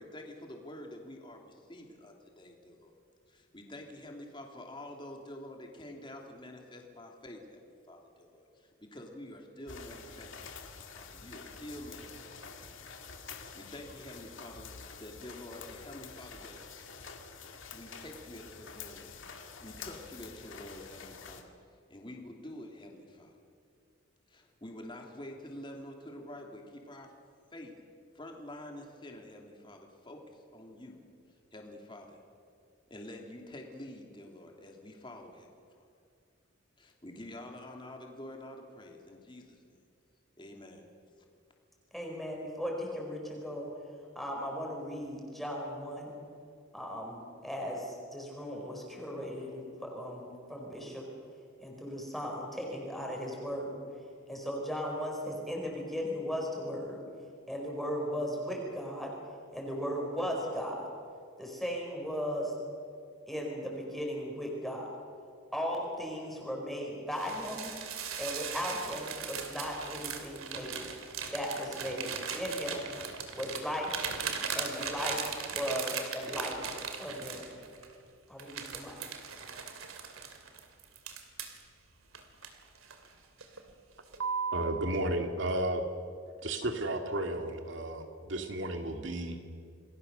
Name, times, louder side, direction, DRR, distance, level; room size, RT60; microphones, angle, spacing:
voice 1, 0.0-2.9 3.3-16.6 17.7-19.1 19.6-21.5 21.9-23.3 24.3-27.1 27.5-27.7 28.1-31.0 31.5-32.2 32.9-35.5 35.7-35.9 36.8-39.6 40.4-40.9, left 1 dB, 25° left, 2 dB, 2.9 m, -48 dB
sound 1, 9.7-21.4, left 5 dB, 65° left, 2.1 m, -48 dB
voice 2, 41.9-43.7 44.1-46.2 46.7-51.1 51.6-53.8 54.3-57.0 57.5-59.1 59.5-60.9 61.4-62.5 63.3-64.9 65.5-67.7 68.2-70.9 71.3-72.9 73.3-74.0 74.5-75.2 75.5-76.6 77.0-77.5 78.3-78.9, equal, ahead, -1 dB, 4.5 m, -37 dB
sound 2, 67.1-77.9 78.4-81.6 82.1-83.1 83.4-83.7 84.1-84.7, right 6 dB, 85° right, 2.7 m, -38 dB
voice 3, 84.5-85.9 86.4-89.5, right 1 dB, 60° right, 5 dB, 2.4 m, -33 dB
28.5 x 20.5 x 6.8 m, 2.3 s
head